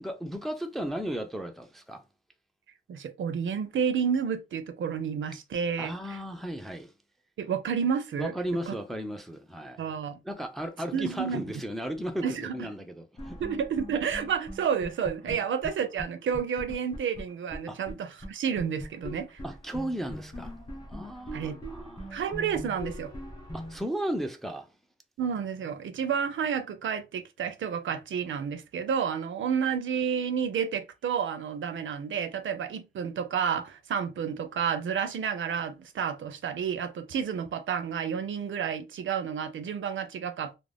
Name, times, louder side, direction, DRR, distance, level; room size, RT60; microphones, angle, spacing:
voice 1, 0.0-2.0 5.8-6.9 8.2-9.8 10.2-13.4 15.2-15.4 17.7-17.8 19.4-20.5 20.9-22.1 23.5-24.7, equal, ahead, 0.3 m, -35 dB
voice 2, 2.9-6.2 7.4-8.3 8.7-8.8 9.8-10.2 10.9-11.4 12.2-12.6 13.4-19.4 21.3-21.6 22.1-23.1 25.2-40.6, right 7 dB, 75° right, 0.5 m, -30 dB
sound 1, 13.2-15.7 16.0-16.1 16.3-17.9 18.2-18.3 18.6-23.8, equal, 20° left, 0.8 m, -41 dB
2.4 x 2.1 x 3.2 m
wide cardioid pair, 175°, 20 cm